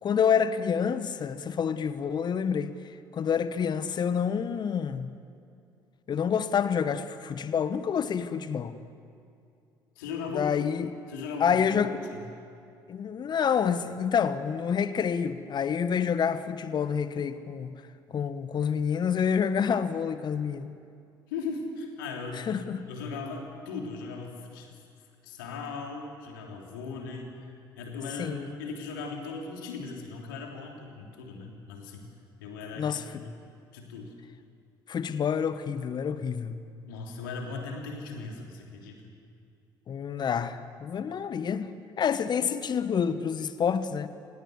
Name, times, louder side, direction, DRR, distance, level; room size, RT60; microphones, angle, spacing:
voice 1, 0.0-2.7 3.1-5.1 6.1-8.8 10.3-11.0 11.4-12.0 12.9-17.7 18.1-20.7 22.5-22.8 28.2-28.6 32.8-33.2 34.9-36.6 39.9-41.7 42.0-44.1, left 7 dB, 40° left, 13 dB, 1.2 m, -28 dB
voice 2, 9.9-10.5 11.1-12.2 21.3-22.5 22.9-24.8 25.2-32.1 32.4-33.4 33.7-34.1 36.9-39.0, left 4 dB, 70° left, 1 dB, 3.3 m, -38 dB
28.5 x 17.5 x 8.1 m, 2.4 s
figure-of-eight pair, 55°, 11 cm